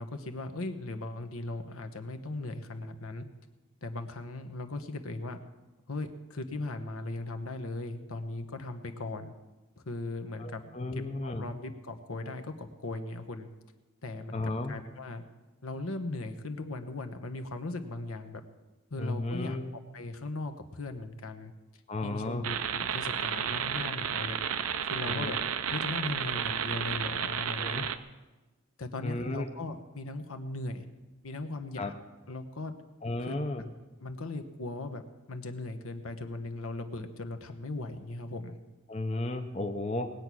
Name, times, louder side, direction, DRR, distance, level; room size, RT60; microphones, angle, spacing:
voice 1, 0.0-3.3 3.8-5.4 5.9-9.3 9.8-10.8 11.2-13.5 14.0-15.2 15.6-18.4 18.9-21.5 22.0-24.4 24.9-25.4 25.7-27.8 28.8-30.8 31.2-31.9 32.3-32.7 33.3-33.6 34.0-35.0 35.3-38.6, left 2 dB, 70° left, 7 dB, 1.1 m, -38 dB
voice 2, 10.4-11.4 14.3-14.7 19.0-19.7 21.9-22.5 25.0-25.4 27.6-27.9 29.0-29.5 31.8-31.9 33.0-33.6 38.9-40.1, left 2 dB, 30° left, 5 dB, 0.7 m, -34 dB
sound 1, 22.4-28.0, right 8 dB, 75° right, 0.7 m, -32 dB
19.5 x 8.4 x 6.2 m, 1.1 s
head